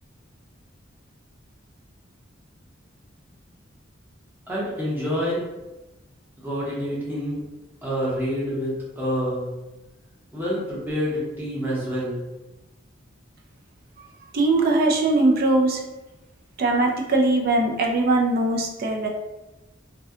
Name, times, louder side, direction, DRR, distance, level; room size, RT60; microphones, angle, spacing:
voice 1, 4.5-5.4 6.4-7.4 7.8-9.5 10.3-12.2, equal, 10° right, -8 dB, 0.8 m, -27 dB
voice 2, 14.3-15.8 16.6-19.1, right 2 dB, 50° right, 1 dB, 0.3 m, -20 dB
2.6 x 2.1 x 2.3 m, 1.0 s
head